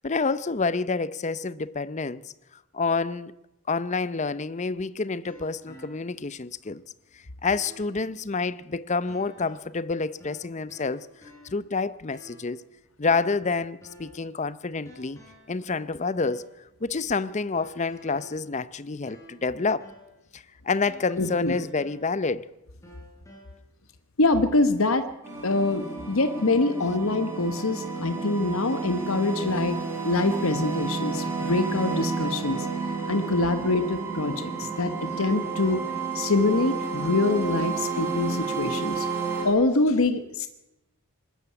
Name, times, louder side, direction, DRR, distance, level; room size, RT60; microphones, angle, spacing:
voice 1, 0.0-2.2 2.7-3.3 3.7-6.8 7.4-11.1 11.4-12.6 13.0-15.2 15.5-16.4 16.8-19.9 20.3-22.4, left 4 dB, 35° left, 0.6 m, -28 dB
sound 1, 5.2-6.3 6.8-6.9 7.5-8.1 9.1-9.8 10.2-11.7 12.1-12.6 13.0-14.3 14.9-15.6 16.2-16.6 17.5-19.5 19.8-20.2 20.9-22.4 22.8-23.5, equal, 15° left, 7.2 m, -51 dB
voice 2, 21.2-21.6 24.2-25.1 25.4-29.8 30.0-32.7 33.1-35.8 36.1-39.1 39.4-40.5, left 2 dB, 75° left, 1.2 m, -24 dB
sound 2, 25.2-39.5, right 4 dB, 10° right, 6.0 m, -31 dB
20.5 x 13.0 x 9.8 m
head